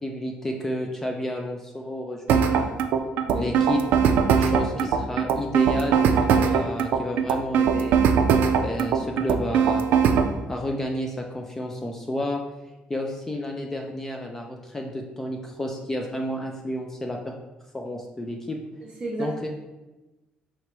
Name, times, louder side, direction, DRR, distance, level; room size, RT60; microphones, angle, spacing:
voice 1, 0.0-2.8 3.3-3.8 4.4-8.0 8.6-9.8 10.5-12.4 12.9-17.4 17.7-18.6 19.2-19.5, left 1 dB, 15° left, 1 dB, 0.3 m, -31 dB
Bou game, 2.3-10.3, right 7 dB, 80° right, 0.4 m, -20 dB
voice 2, 3.2-3.6 18.8-19.5, right 2 dB, 30° right, -6 dB, 0.6 m, -33 dB
4.6 x 2.9 x 3.1 m, 1.1 s
cardioid pair, 165°, 3 cm